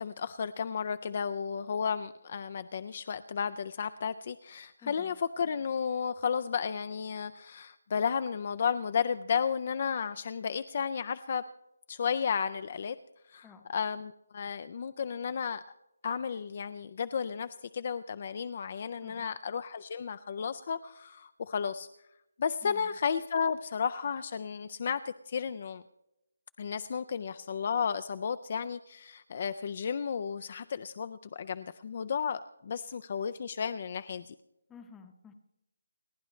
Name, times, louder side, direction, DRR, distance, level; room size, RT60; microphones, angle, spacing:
voice 1, 0.0-11.4 11.9-13.0 13.3-15.6 16.0-17.5 17.7-21.9 22.4-25.8 26.6-34.3, left 6 dB, 30° left, 12 dB, 0.4 m, -33 dB
voice 2, 4.8-5.1 13.4-13.7 19.0-19.3 22.6-22.9 34.7-35.3, left 5 dB, 5° left, 6 dB, 0.8 m, -52 dB
30.0 x 10.0 x 3.2 m, 0.88 s
hypercardioid pair, 175°, 0 cm